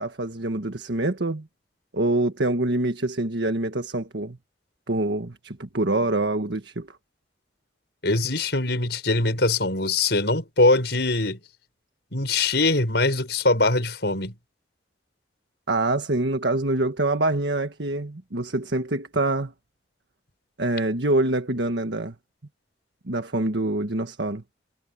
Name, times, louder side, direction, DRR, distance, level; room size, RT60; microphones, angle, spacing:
voice 1, 0.0-1.5 1.9-4.4 4.9-6.9 15.7-19.5 20.6-22.1 23.1-24.4, right 2 dB, 75° right, 1.6 m, -25 dB
voice 2, 8.0-11.4 12.1-14.3, left 2 dB, 65° left, 6.7 m, -22 dB
head